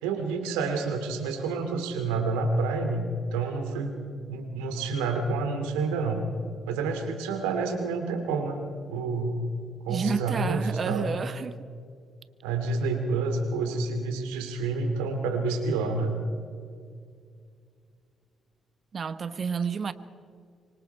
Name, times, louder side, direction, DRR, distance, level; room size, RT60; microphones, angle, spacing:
voice 1, 0.0-3.9 4.3-6.3 6.7-8.6 8.9-9.4 9.8-11.1 12.4-16.2, right 3 dB, 80° right, 2.6 m, -28 dB
voice 2, 9.9-11.7 18.9-19.9, right 6 dB, 50° right, 1.2 m, -30 dB
25.5 x 24.5 x 4.6 m
hypercardioid pair, 45°, 0 cm